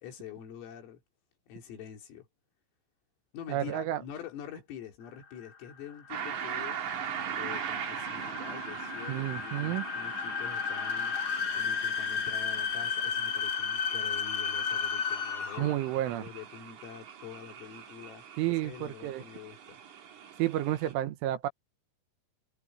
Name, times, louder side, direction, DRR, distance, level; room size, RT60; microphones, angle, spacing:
voice 1, 0.0-1.0 1.5-2.3 3.3-6.9 7.3-11.2 11.5-18.3 18.6-19.8, left 9 dB, 80° left, 6.4 m, -46 dB
voice 2, 3.5-4.0 9.1-9.9 15.6-16.2 18.4-19.2 20.4-21.5, right 13 dB, 75° right, 3.6 m, -31 dB
sound 1, 5.2-15.9, left 6 dB, 45° left, 2.1 m, -34 dB
sound 2, 6.1-20.9, right 8 dB, 50° right, 2.6 m, -41 dB
omnidirectional pair, 5.9 m